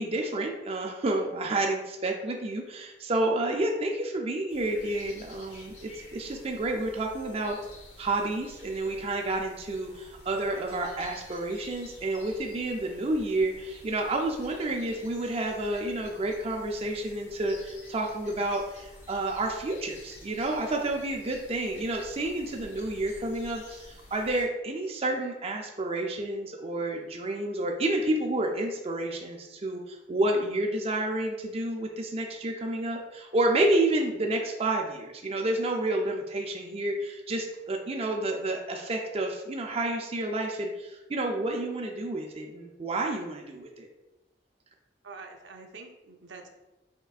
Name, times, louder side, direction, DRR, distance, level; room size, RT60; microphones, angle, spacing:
voice 1, 0.0-7.6 8.0-43.9, right 2 dB, 35° right, 1 dB, 0.4 m, -30 dB
sound 1, 4.5-24.4, left 1 dB, 75° left, 1.4 m, -50 dB
voice 2, 45.0-46.5, right 4 dB, 80° right, 3 dB, 0.6 m, -46 dB
5.6 x 3.7 x 2.4 m, 1.0 s
head